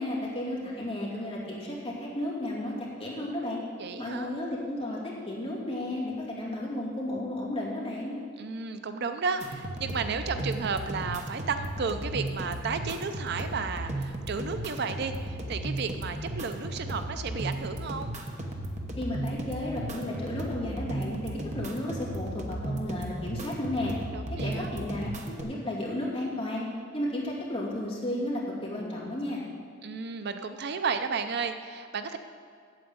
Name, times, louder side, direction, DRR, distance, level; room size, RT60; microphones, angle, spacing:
voice 1, 0.0-3.6 4.0-8.2 19.0-23.9 24.4-26.7 26.9-29.4, left 1 dB, 30° left, -5 dB, 2.6 m, -33 dB
voice 2, 3.8-4.3 8.4-18.1 24.1-24.7 29.8-32.2, right 5 dB, 55° right, 9 dB, 0.5 m, -33 dB
sound 1, 9.4-25.4, right 1 dB, 35° right, 1.0 m, -35 dB
8.9 x 7.8 x 7.9 m, 2.2 s
head